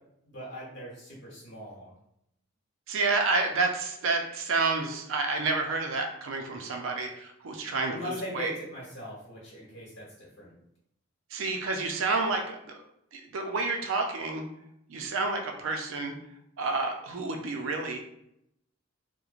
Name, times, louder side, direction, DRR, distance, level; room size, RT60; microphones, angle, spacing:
voice 1, 0.2-1.9 7.9-10.5, equal, 60° left, -5 dB, 1.1 m, -40 dB
voice 2, 2.9-8.5 11.3-12.8 13.1-14.4 14.9-16.1 16.6-18.0, right 3 dB, 75° right, 4 dB, 0.4 m, -29 dB
2.9 x 2.1 x 2.4 m, 0.76 s
head